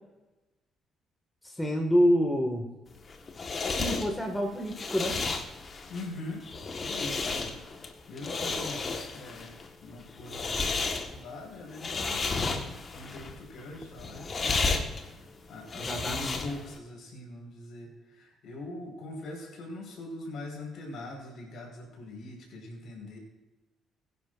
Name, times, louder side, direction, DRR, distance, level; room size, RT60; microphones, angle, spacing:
voice 1, 1.4-2.7 3.7-5.2 15.7-16.4, equal, 10° left, 2 dB, 1.9 m, -27 dB
sound 1, 2.9-16.8, left 4 dB, 40° left, 1.5 m, -33 dB
voice 2, 5.9-6.5 6.8-7.5 8.1-9.5 9.8-14.8 15.5-23.2, left 2 dB, 60° left, 1 dB, 4.7 m, -42 dB
22.0 x 9.8 x 2.6 m, 1.1 s
figure-of-eight pair, 45°, 0 cm